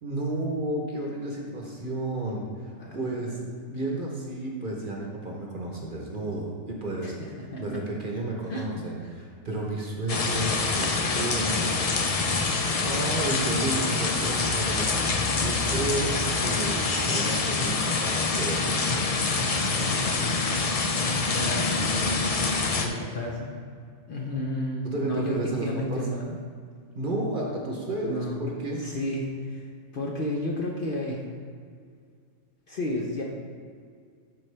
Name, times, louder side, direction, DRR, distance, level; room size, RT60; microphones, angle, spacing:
voice 1, 0.0-3.4 3.7-7.1 7.6-12.6 12.8-15.0 15.3-18.6 24.8-26.1 26.9-28.8, right 2 dB, 40° right, -1 dB, 1.0 m, -32 dB
voice 2, 2.8-3.4 7.0-7.8 8.5-8.7 9.0-9.1 19.8-20.4 20.9-22.3 22.7-23.6 24.1-26.4 28.1-28.4 28.8-29.6 29.9-31.3 32.7-33.2, left 1 dB, 50° left, -2 dB, 0.8 m, -32 dB
sound 1, 10.1-22.9, left 3 dB, 70° left, 0.3 m, -26 dB
12.0 x 4.3 x 3.3 m, 2.1 s
omnidirectional pair, 1.4 m